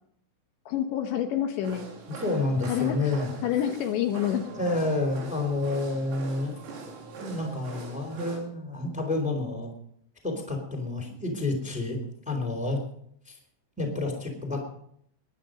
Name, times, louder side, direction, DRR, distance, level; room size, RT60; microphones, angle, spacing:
voice 1, 0.7-1.9 2.7-3.1 3.4-4.5, left 10 dB, 75° left, 5 dB, 3.2 m, -27 dB
sound 1, 1.6-8.4, right 4 dB, 90° right, 5.7 m, -42 dB
voice 2, 2.2-3.3 4.5-6.5 7.2-9.7 10.2-12.0 12.2-12.8 13.2-13.4 13.8-14.7, left 2 dB, ahead, 2 dB, 2.8 m, -29 dB
22.0 x 10.0 x 5.3 m, 0.68 s
omnidirectional pair, 5.6 m